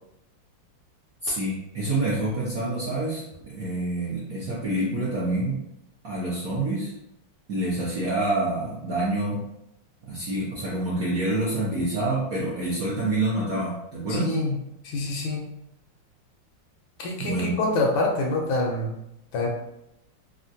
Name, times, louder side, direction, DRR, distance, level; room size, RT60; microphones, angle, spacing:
voice 1, 1.2-5.6 6.0-6.9 7.5-9.4 10.1-14.3 17.2-17.5, right 2 dB, 70° right, -8 dB, 0.8 m, -27 dB
voice 2, 14.1-14.5 14.8-15.4 17.0-19.0 19.3-19.5, left 2 dB, 75° left, -1 dB, 1.2 m, -26 dB
3.6 x 2.2 x 2.6 m, 0.84 s
omnidirectional pair, 2.4 m